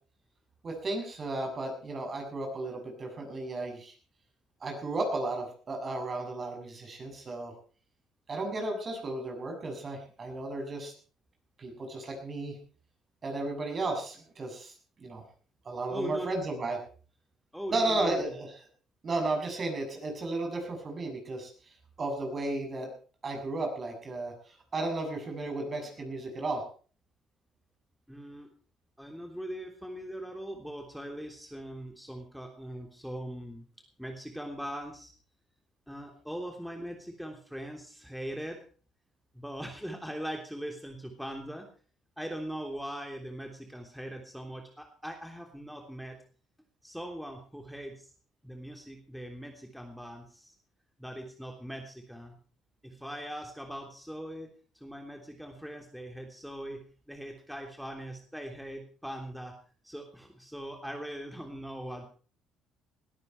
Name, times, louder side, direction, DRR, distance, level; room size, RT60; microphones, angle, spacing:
voice 1, 0.6-3.9 4.6-7.5 8.3-10.9 11.6-12.6 13.2-14.7 15.0-15.2 15.7-16.8 17.7-18.5 19.0-21.5 22.0-22.9 23.2-24.3 24.7-26.6, right 2 dB, 40° right, 4 dB, 7.2 m, -34 dB
voice 2, 15.9-16.3 17.5-18.4 28.1-28.5 29.0-33.6 34.0-35.1 35.9-38.6 39.3-41.7 42.2-46.2 46.8-48.1 48.4-50.5 51.0-52.4 52.8-54.5 54.7-59.5 59.8-62.1, equal, ahead, 3 dB, 3.3 m, -40 dB
20.0 x 13.5 x 4.6 m, 0.41 s
hypercardioid pair, 60°, 0 cm